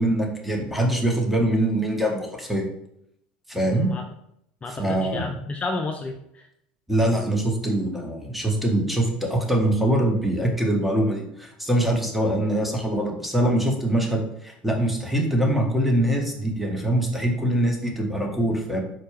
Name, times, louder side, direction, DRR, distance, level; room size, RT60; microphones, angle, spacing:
voice 1, 0.0-2.6 3.5-3.9 4.7-5.3 6.9-18.8, right 1 dB, 5° right, 1 dB, 0.9 m, -23 dB
voice 2, 3.7-4.0 4.6-6.5, left 3 dB, 25° left, 3 dB, 0.3 m, -32 dB
4.3 x 2.2 x 3.1 m, 0.76 s
hypercardioid pair, 80°, 5 cm